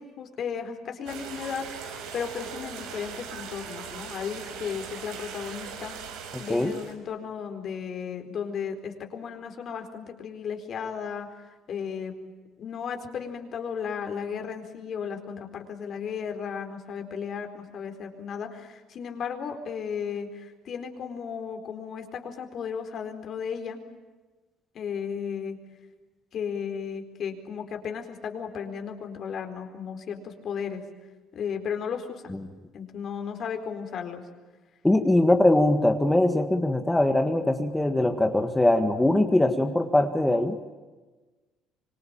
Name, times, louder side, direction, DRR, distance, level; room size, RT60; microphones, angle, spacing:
voice 1, 0.0-5.9 6.4-12.1 12.6-23.8 24.7-25.6 26.3-30.8 31.3-32.3 32.7-34.2 35.3-35.4, left 7 dB, 45° left, 6 dB, 4.3 m, -35 dB
sound 1, 1.1-6.9, right 6 dB, 85° right, 5.4 m, -40 dB
voice 2, 34.8-40.5, left 1 dB, 10° left, 6 dB, 1.7 m, -22 dB
26.0 x 25.0 x 9.0 m, 1.3 s
cardioid pair, 135°, 0 cm